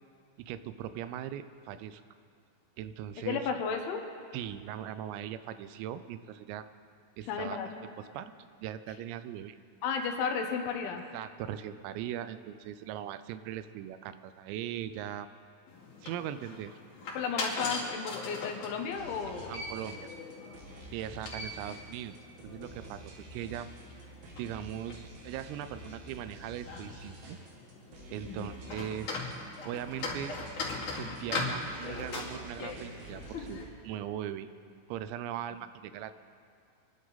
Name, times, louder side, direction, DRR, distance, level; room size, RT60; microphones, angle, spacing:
voice 1, 0.4-2.0 2.8-3.4 4.3-6.7 7.2-7.6 8.1-8.3 8.6-9.6 11.1-15.3 16.0-16.7 19.4-20.2 20.9-22.2 22.4-23.0 23.3-23.7 24.4-27.4 28.1-29.2 29.7-30.3 30.9-34.5 34.9-36.1, right 11 dB, 85° right, 12 dB, 3.3 m, -39 dB
voice 2, 3.2-4.0 7.3-7.7 9.8-11.0 17.1-19.6 28.2-28.5, left 6 dB, 75° left, 4 dB, 3.2 m, -33 dB
sound 1, 15.7-33.6, left 3 dB, 45° left, 3.5 m, -41 dB
sound 2, 18.9-33.7, right 2 dB, 65° right, 3.9 m, -50 dB
27.0 x 11.0 x 4.0 m, 2.4 s
omnidirectional pair, 5.9 m